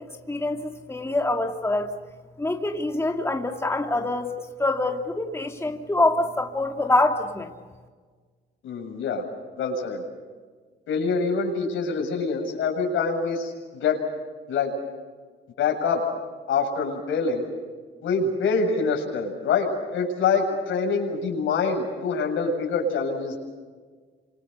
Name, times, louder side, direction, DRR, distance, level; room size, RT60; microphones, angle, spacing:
voice 1, 0.0-1.9 2.4-4.3 4.6-7.5, left 2 dB, 15° left, 3 dB, 2.7 m, -25 dB
voice 2, 8.6-9.2 9.6-10.0 10.9-14.0 14.5-14.7 15.6-16.0 16.5-17.5 18.0-23.4, left 4 dB, 80° left, 2 dB, 7.7 m, -25 dB
29.0 x 27.0 x 6.9 m, 1.5 s
cardioid pair, 90°, 20 cm